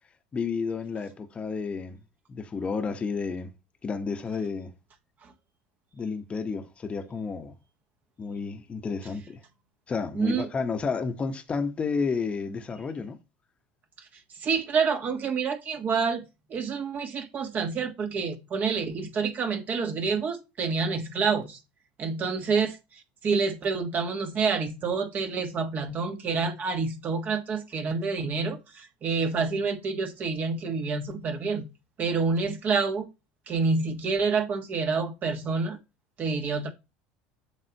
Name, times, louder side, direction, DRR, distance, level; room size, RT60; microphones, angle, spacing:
voice 1, 0.3-2.0 2.3-3.5 3.8-4.7 5.9-7.5 8.2-9.4 9.9-13.2, left 5 dB, 25° left, 1.1 m, -31 dB
voice 2, 10.1-10.5 14.4-16.2 16.5-21.6 22.0-31.6 32.0-33.1 33.5-35.8 36.2-36.7, right 5 dB, 40° right, 1.5 m, -28 dB
7.9 x 5.7 x 2.9 m
supercardioid pair, 105°, 5 cm